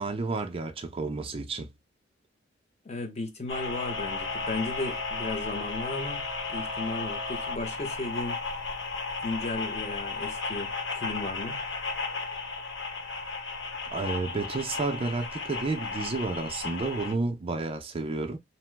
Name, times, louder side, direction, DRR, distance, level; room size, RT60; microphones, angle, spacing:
voice 1, 0.0-1.7 13.9-18.4, right 3 dB, 30° right, 0.4 m, -31 dB
voice 2, 2.8-8.4 9.2-11.6, left 2 dB, 35° left, 0.7 m, -35 dB
sound 1, 3.5-17.1, left 4 dB, 75° left, 1.3 m, -34 dB
2.8 x 2.0 x 3.2 m
head